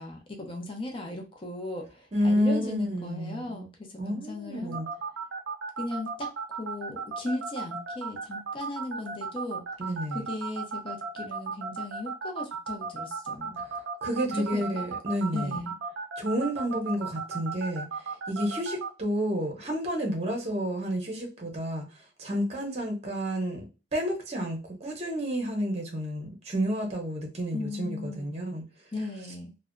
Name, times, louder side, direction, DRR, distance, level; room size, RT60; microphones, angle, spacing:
voice 1, 0.0-4.8 5.8-9.6 10.1-13.6 14.3-14.8 15.3-15.8 27.5-28.3 28.9-29.5, left 2 dB, 30° left, 0.6 m, -37 dB
voice 2, 2.1-3.6 4.0-4.9 9.8-10.2 13.7-15.6 16.2-17.9 18.3-21.8 22.2-23.7 23.9-28.6, equal, 35° right, 0.8 m, -30 dB
sound 1, 4.7-18.9, right 5 dB, 80° right, 0.4 m, -34 dB
2.7 x 2.1 x 2.4 m
head